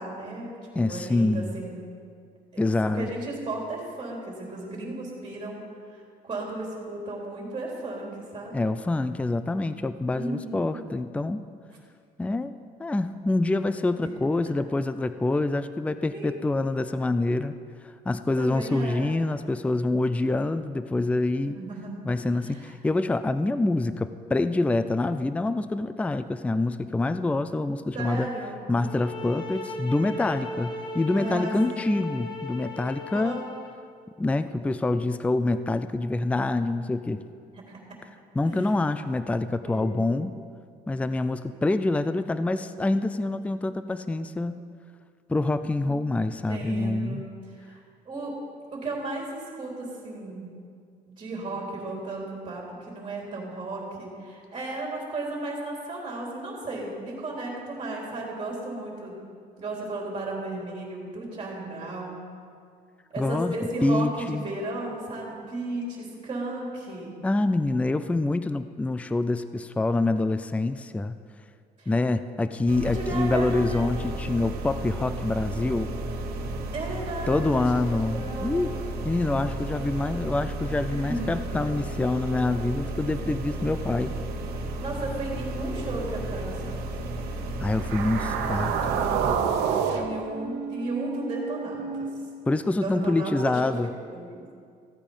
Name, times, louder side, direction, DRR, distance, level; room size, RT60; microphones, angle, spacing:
voice 1, 0.0-1.8 2.5-2.7 2.9-5.6 6.2-8.6 10.1-10.8 14.0-14.2 16.1-16.4 18.4-19.1 21.4-21.9 22.4-22.7 27.9-28.6 31.2-32.0 33.1-33.4 37.5-37.8 38.4-38.7 39.6-40.1 45.8-46.0 46.5-47.2 47.7-48.4 48.7-50.5 51.1-59.2 59.6-62.2 63.1-67.1 71.8-71.9 72.9-73.9 76.7-77.7 78.1-78.6 80.9-81.3 84.8-86.9 89.9-92.1 92.8-94.4, right 2 dB, 30° right, -2 dB, 3.5 m, -34 dB
voice 2, 0.8-1.6 2.6-3.1 8.5-11.4 12.2-12.5 12.8-17.5 18.1-21.6 22.0-28.3 28.7-33.4 34.2-37.2 38.4-40.4 40.9-44.6 45.3-47.2 63.2-64.5 67.2-71.1 71.9-75.9 77.3-78.8 79.0-84.2 87.6-89.0 92.5-93.9, left 2 dB, 10° left, 12 dB, 0.4 m, -26 dB
sound 1, 28.8-33.8, left 2 dB, 25° left, 1.5 m, -37 dB
sound 2, 72.7-89.3, right 1 dB, 65° right, 1.5 m, -33 dB
sound 3, 87.7-92.1, right 7 dB, 90° right, 1.2 m, -29 dB
15.0 x 8.7 x 5.5 m, 2.2 s
cardioid pair, 110°, 17 cm